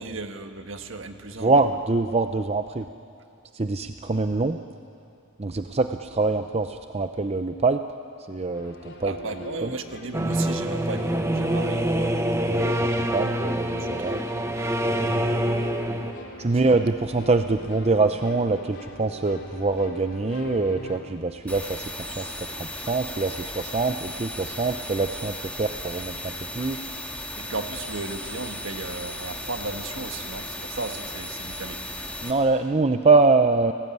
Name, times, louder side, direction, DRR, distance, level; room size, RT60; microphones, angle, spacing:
voice 1, 0.0-1.6 9.0-12.2 14.0-14.4 16.4-16.7 26.6-26.7 27.4-32.2, right 3 dB, 65° right, 6 dB, 1.5 m, -35 dB
voice 2, 1.4-2.9 3.5-4.6 5.4-7.8 8.3-9.1 9.6-9.7 12.3-14.2 14.5-14.6 16.4-26.8 32.2-33.7, right 3 dB, 30° right, 8 dB, 0.6 m, -24 dB
sound 1, 8.5-21.0, left 1 dB, 55° left, 3.2 m, -41 dB
sound 2, 10.1-16.1, right 1 dB, 15° right, 1.1 m, -25 dB
sound 3, 21.5-32.3, left 1 dB, 5° left, 2.1 m, -36 dB
29.5 x 18.0 x 9.6 m, 2.6 s
head